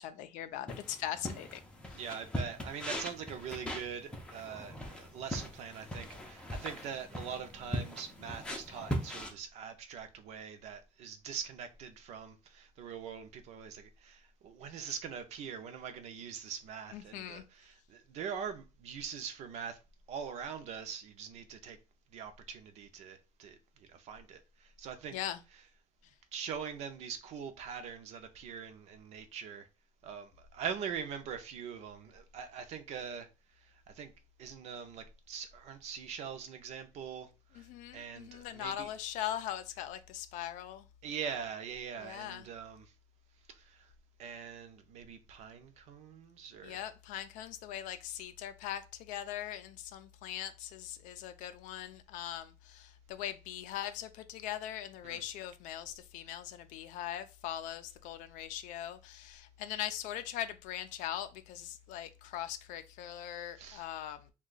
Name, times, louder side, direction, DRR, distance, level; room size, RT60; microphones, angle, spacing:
voice 1, 0.0-1.6 1.9-2.0 8.7-8.8 16.9-17.4 25.1-25.4 37.6-40.9 42.0-42.5 46.6-64.3, left 11 dB, 80° left, 0.4 m, -41 dB
sound 1, 0.7-9.3, equal, 10° left, 0.4 m, -40 dB
voice 2, 1.9-19.8 20.1-21.8 22.1-25.2 26.3-29.7 30.0-33.3 33.6-34.1 34.4-37.7 37.9-38.9 41.0-42.9 43.5-43.9 44.2-46.8 55.0-55.2 63.6-63.9, right 7 dB, 60° right, 0.6 m, -43 dB
2.8 x 2.3 x 3.8 m
cardioid pair, 160°, 13 cm